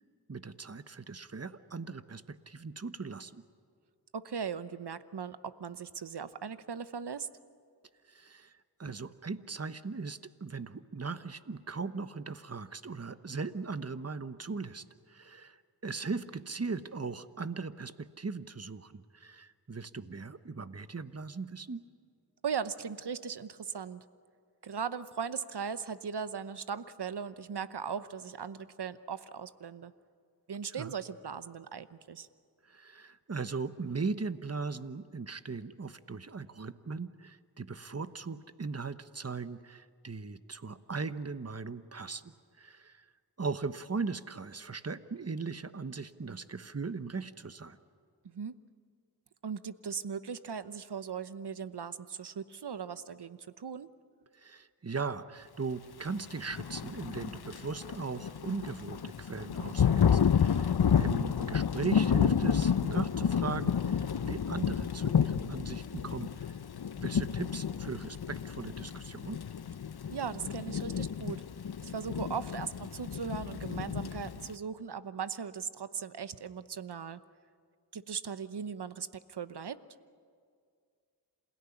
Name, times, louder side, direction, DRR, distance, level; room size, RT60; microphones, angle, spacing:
voice 1, 0.3-3.4 8.1-8.5 8.8-21.8 30.8-30.9 32.7-43.1 43.4-47.8 54.4-66.3 67.0-69.4, right 4 dB, 35° right, 12 dB, 1.1 m, -39 dB
voice 2, 4.1-7.3 22.4-24.0 24.6-29.9 30.5-32.3 48.2-48.5 49.4-53.9 61.4-61.5 70.1-71.4 71.8-77.2 77.9-79.8, right 6 dB, 70° right, 14 dB, 1.0 m, -38 dB
Thunder / Rain, 56.4-74.5, left 7 dB, 65° left, 0.8 m, -30 dB
27.5 x 17.0 x 10.0 m, 2.2 s
cardioid pair, 40°, 41 cm